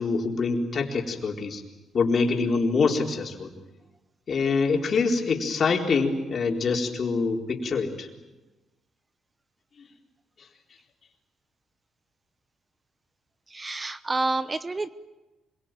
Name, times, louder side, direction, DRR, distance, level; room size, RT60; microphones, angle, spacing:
voice 1, 0.0-1.6 1.9-3.5 4.3-8.1, left 4 dB, 50° left, 1 dB, 4.2 m, -25 dB
voice 2, 13.5-14.9, right 2 dB, 25° right, 13 dB, 0.9 m, -28 dB
26.0 x 23.5 x 9.1 m, 1.1 s
cardioid pair, 90°, 0 cm